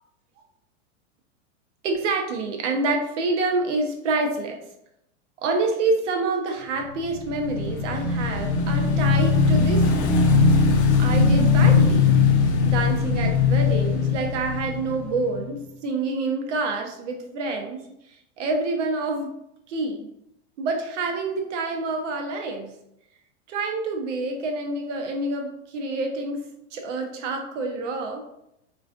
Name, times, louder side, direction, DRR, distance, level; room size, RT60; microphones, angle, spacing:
voice 1, 1.8-4.6 5.4-10.2 11.0-12.1 12.6-17.8 18.1-19.3 19.7-20.1 20.6-22.7 23.5-26.4 26.7-28.2, right 3 dB, 75° right, 3 dB, 0.7 m, -27 dB
Motorcycle / Engine, 7.0-15.5, left 5 dB, 65° left, 0.5 m, -20 dB
2.4 x 2.3 x 2.3 m, 0.81 s
supercardioid pair, 155°, 36 cm